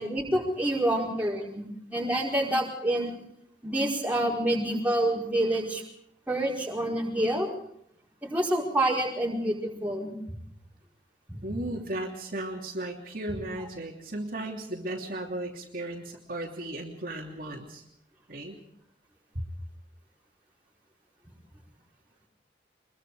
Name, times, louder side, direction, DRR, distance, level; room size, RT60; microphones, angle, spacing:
voice 1, 0.0-1.6 1.9-3.2 3.6-5.8 6.3-7.5 8.2-10.1 11.3-11.4, right 1 dB, 10° right, -3 dB, 4.8 m, -27 dB
voice 2, 11.4-17.8 18.3-18.6 19.3-19.5, right 1 dB, 50° right, -1 dB, 3.0 m, -35 dB
24.0 x 22.5 x 4.9 m, 0.71 s
head